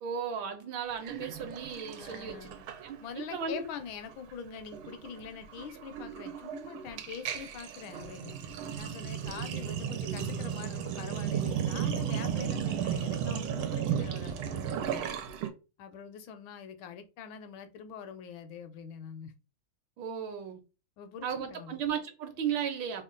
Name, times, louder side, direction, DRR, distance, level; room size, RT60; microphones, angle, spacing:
voice 1, 0.0-2.5 2.8-3.0 3.3-3.6 20.0-20.6 21.2-23.0, right 7 dB, 70° right, 1.4 m, -35 dB
Sink (filling or washing), 1.0-3.2 3.5-3.8 4.1-15.5, right 8 dB, 90° right, 1.5 m, -35 dB
voice 2, 2.0-2.6 3.0-8.4 8.8-15.1 15.8-19.3 21.0-21.8, left 7 dB, 75° left, 1.3 m, -44 dB
3.6 x 2.3 x 3.7 m
omnidirectional pair, 2.3 m